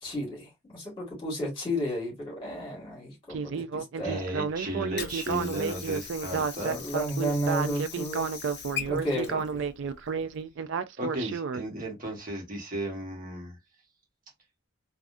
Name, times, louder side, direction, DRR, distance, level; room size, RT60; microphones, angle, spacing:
voice 1, 0.0-4.2 6.6-8.5 8.8-9.6, equal, 25° left, 1.8 m, -33 dB
Speech synthesizer, 3.3-11.6, right 5 dB, 55° right, 0.3 m, -31 dB
voice 2, 4.0-6.8 11.0-13.6, right 1 dB, 40° right, 1.2 m, -35 dB
Water / Sink (filling or washing), 4.5-10.5, left 8 dB, 50° left, 0.6 m, -41 dB
3.5 x 2.3 x 2.5 m
head